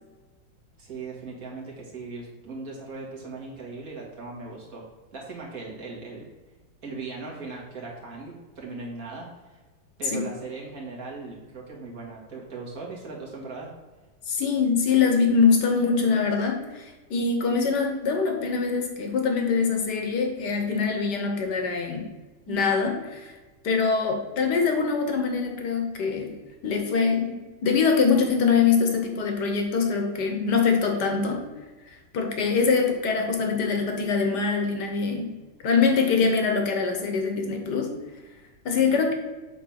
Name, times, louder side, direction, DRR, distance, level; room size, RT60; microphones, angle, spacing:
voice 1, 0.8-4.8 5.1-6.3 6.8-9.6 10.0-13.7 32.7-32.8 38.7-38.8, right 3 dB, 50° right, -3 dB, 2.1 m, -38 dB
voice 2, 14.3-22.1 22.5-23.3 23.6-26.3 26.6-31.4 32.1-35.3 35.6-37.9 38.6-39.1, left 5 dB, 65° left, 4 dB, 1.7 m, -23 dB
7.9 x 3.5 x 5.8 m, 1.2 s
omnidirectional pair, 2.1 m